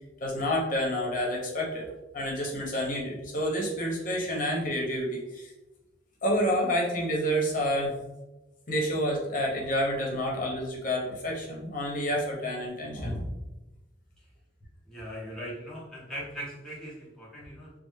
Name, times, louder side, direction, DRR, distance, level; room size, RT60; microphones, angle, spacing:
voice 1, 0.2-1.9 2.1-5.5 6.2-8.0 8.7-13.3, equal, 50° left, -2 dB, 0.8 m, -29 dB
voice 2, 14.8-17.7, equal, 5° left, -7 dB, 0.8 m, -40 dB
3.3 x 2.0 x 3.1 m, 1.0 s
head